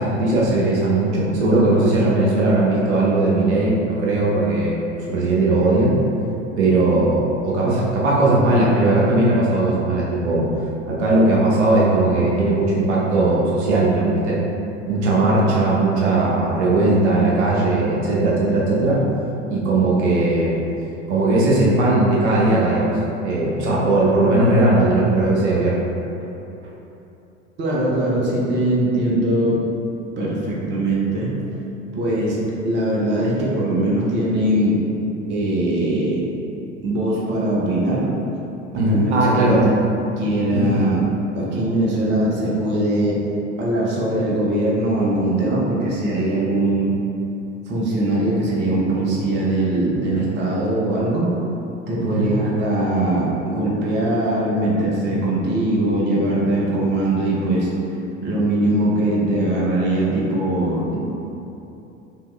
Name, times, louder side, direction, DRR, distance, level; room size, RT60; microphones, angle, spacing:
voice 1, 0.0-4.7 5.1-5.9 6.6-10.5 10.9-14.4 14.9-19.0 19.5-20.6 21.1-22.9 23.2-25.8 38.7-39.7 40.5-40.9 52.0-52.3, right 2 dB, 65° right, -5 dB, 0.9 m, -18 dB
voice 2, 27.6-29.6 30.2-31.3 31.9-32.4 32.6-34.8 35.3-36.3 36.8-38.1 38.9-39.7 40.2-41.0 41.3-43.2 43.6-46.9 47.7-51.3 51.9-57.7 58.2-61.0, right 1 dB, 30° right, -5 dB, 0.8 m, -21 dB
3.7 x 2.9 x 3.1 m, 2.9 s
figure-of-eight pair, 75°, 36 cm